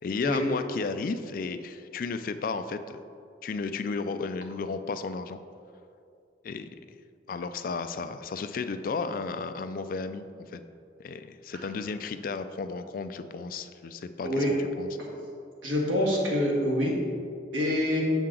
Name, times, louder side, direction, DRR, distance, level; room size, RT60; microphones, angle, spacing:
voice 1, 0.0-3.0 3.4-5.4 6.4-6.7 7.3-10.6 11.0-14.5 14.8-14.9, left 4 dB, 45° left, 10 dB, 0.3 m, -33 dB
voice 2, 15.6-17.0 17.5-18.0, left 1 dB, 85° right, -3 dB, 1.5 m, -26 dB
7.2 x 5.6 x 3.8 m, 2.5 s
head